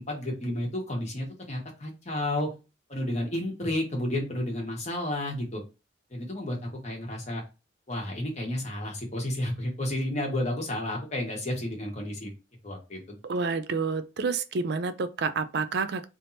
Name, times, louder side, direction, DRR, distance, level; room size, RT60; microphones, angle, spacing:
voice 1, 0.0-2.5 2.9-5.6 6.1-6.6 6.8-7.4 7.9-12.3 12.6-13.2, left 1 dB, 35° left, 1.4 m, -31 dB
voice 2, 13.2-16.1, right 4 dB, 55° right, 0.4 m, -29 dB
3.4 x 2.8 x 4.0 m
head